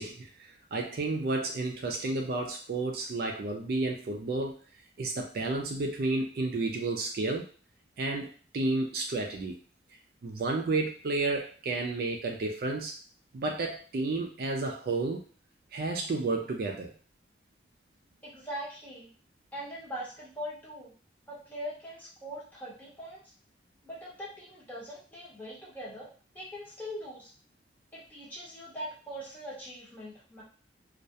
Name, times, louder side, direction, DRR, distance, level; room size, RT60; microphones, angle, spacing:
voice 1, 0.0-4.6 5.0-7.5 8.0-9.6 10.2-12.9 13.3-15.2 15.7-16.9, right 2 dB, 55° right, 1 dB, 0.3 m, -31 dB
voice 2, 18.2-19.1 19.5-20.9 21.3-23.3 23.8-26.1 26.3-27.3 27.9-30.4, equal, 10° left, -8 dB, 0.8 m, -41 dB
2.3 x 2.1 x 2.7 m, 0.41 s
head